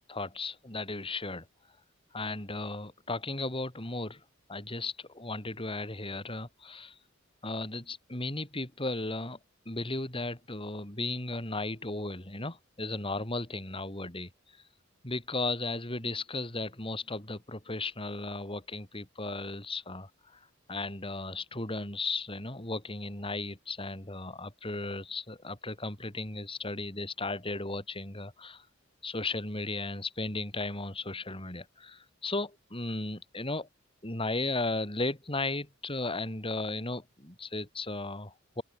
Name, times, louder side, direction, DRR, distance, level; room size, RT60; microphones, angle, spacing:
voice 1, 0.1-1.5 2.1-4.2 4.5-7.0 7.4-9.4 9.7-14.3 15.0-20.4 20.7-28.7 29.0-33.7 34.0-38.6, left 2 dB, 25° left, 3.9 m, -35 dB
open air
head